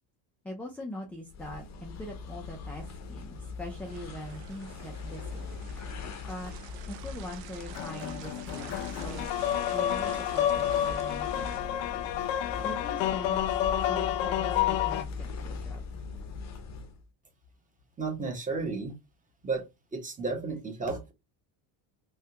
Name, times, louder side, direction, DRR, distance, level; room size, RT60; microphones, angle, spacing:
voice 1, 0.4-5.5 6.3-6.5 6.9-9.3 9.7-11.6 12.6-13.4 13.7-16.0, equal, 5° left, 0.4 m, -42 dB
sound 1, 1.3-17.1, left 4 dB, 35° left, 0.7 m, -40 dB
sound 2, 3.8-11.6, right 10 dB, 70° right, 0.7 m, -50 dB
sound 3, 7.7-15.0, left 11 dB, 85° left, 0.6 m, -29 dB
voice 2, 18.0-18.9 19.4-19.7 19.9-21.1, right 4 dB, 15° right, 1.0 m, -32 dB
3.4 x 2.3 x 2.8 m
cardioid pair, 125°, 48 cm